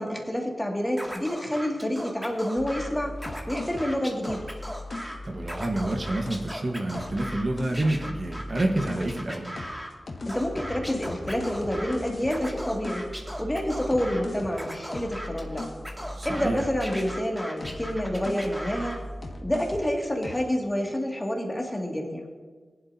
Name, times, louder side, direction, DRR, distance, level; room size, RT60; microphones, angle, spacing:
voice 1, 0.0-3.2 3.5-4.4 10.3-13.1 13.4-15.7 16.2-19.0 19.4-22.3, equal, 15° left, 0 dB, 2.2 m, -28 dB
Scratching (performance technique), 1.0-2.9 3.2-5.2 5.4-7.4 7.7-9.9 10.3-12.0 12.3-14.2 14.5-16.5 16.8-19.0, equal, 10° right, 2.2 m, -38 dB
sound 1, 2.6-6.5 6.9-9.3 9.6-17.2 17.6-19.9 20.2-20.5, left 1 dB, 65° left, 1.7 m, -38 dB
voice 2, 5.2-9.6 16.1-16.6, right 1 dB, 50° right, 2 dB, 1.3 m, -28 dB
19.5 x 11.5 x 2.8 m, 1.4 s
wide cardioid pair, 85°, 0 cm